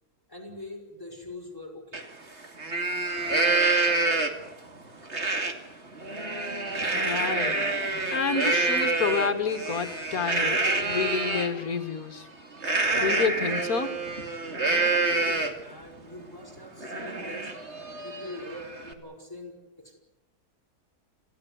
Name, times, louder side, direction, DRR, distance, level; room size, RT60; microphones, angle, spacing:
voice 1, 0.3-2.0 4.9-5.0 14.5-17.5 18.0-20.0, left 1 dB, 15° left, 2 dB, 6.1 m, -43 dB
Livestock farm animals working animals, 1.9-2.0 2.4-4.5 5.1-5.5 5.9-11.5 12.6-15.7 16.1-16.2 16.6-18.9, right 3 dB, 45° right, 2.7 m, -27 dB
voice 2, 6.9-7.6 8.1-12.3 13.0-14.0, left 5 dB, 65° left, 9 dB, 2.3 m, -29 dB
27.0 x 17.0 x 9.7 m, 0.97 s
omnidirectional pair, 1.7 m